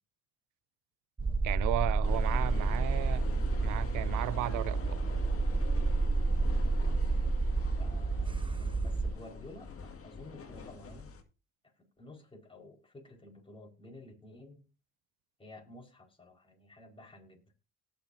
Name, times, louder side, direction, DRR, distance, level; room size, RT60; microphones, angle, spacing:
sound 1, 1.2-9.1, right 3 dB, 15° right, 0.8 m, -30 dB
voice 1, 1.4-3.2 3.6-5.0, right 16 dB, 90° right, 0.5 m, -35 dB
sound 2, 2.0-11.2, left 5 dB, 50° left, 2.2 m, -45 dB
voice 2, 7.8-11.1 11.8-14.6 15.4-17.5, left 2 dB, 20° left, 4.9 m, -52 dB
19.0 x 6.5 x 2.7 m
cardioid pair, 90°, 30 cm